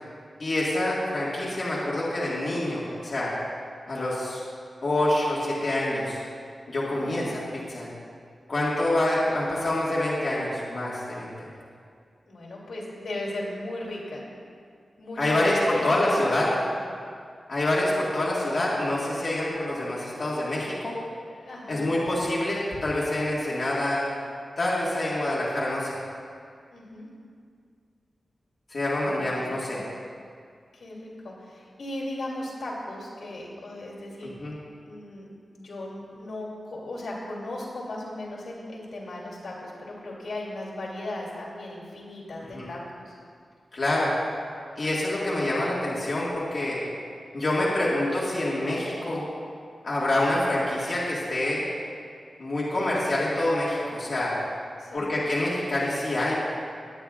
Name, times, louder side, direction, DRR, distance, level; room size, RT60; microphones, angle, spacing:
voice 1, 0.4-3.3 3.9-4.4 4.8-6.2 6.7-7.9 8.5-11.5 15.2-16.5 17.5-20.9 21.7-24.1 24.6-26.0 28.7-29.8 34.2-34.6 42.5-42.7 43.7-44.2 44.8-46.8 47.3-49.2 49.8-51.6 52.4-54.3 54.9-56.3, left 1 dB, 45° left, -7 dB, 1.9 m, -26 dB
voice 2, 6.9-7.2 8.8-8.9 12.3-14.3 15.0-15.5 15.7-16.6 21.4-21.9 26.7-27.1 29.0-29.8 30.7-34.4 34.8-35.3 35.5-43.1 54.8-55.1, left 1 dB, 85° left, -5 dB, 2.7 m, -37 dB
20.0 x 9.0 x 2.5 m, 2.2 s
wide cardioid pair, 150°, 0 cm